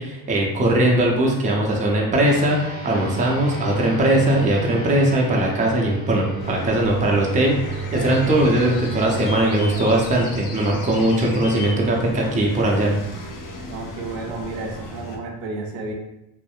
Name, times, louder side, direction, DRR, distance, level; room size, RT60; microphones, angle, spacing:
voice 1, 0.0-2.6 2.8-13.0, right 1 dB, 15° right, -1 dB, 0.5 m, -20 dB
sound 1, 2.3-12.0, right 4 dB, 65° left, 1.3 m, -34 dB
voice 2, 2.9-3.2 13.7-15.9, right 3 dB, 70° right, 2 dB, 0.6 m, -32 dB
sound 2, 6.4-15.2, left 2 dB, 40° left, 0.6 m, -35 dB
2.6 x 2.0 x 2.3 m, 0.88 s
hypercardioid pair, 60°, 50 cm